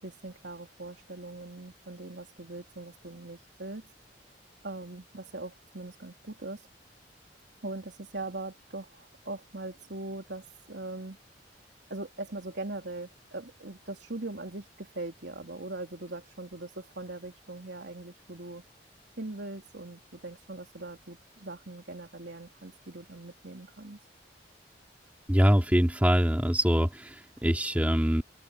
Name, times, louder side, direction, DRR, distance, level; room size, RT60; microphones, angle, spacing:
voice 1, 0.0-3.9 4.6-6.7 7.6-11.2 11.9-18.6 19.2-24.0, right 2 dB, 80° right, 3.0 m, -41 dB
voice 2, 25.3-28.2, equal, 10° right, 3.1 m, -24 dB
head